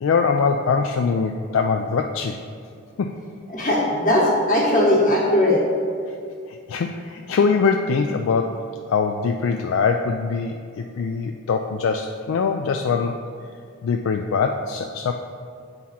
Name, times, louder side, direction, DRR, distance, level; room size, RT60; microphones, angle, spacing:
voice 1, 0.0-2.4 3.0-3.2 6.7-8.6 8.9-13.2 13.8-15.1, left 5 dB, 65° left, 4 dB, 0.3 m, -22 dB
voice 2, 3.5-5.6, left 1 dB, 40° left, -3 dB, 1.4 m, -19 dB
8.5 x 4.1 x 4.2 m, 2.3 s
head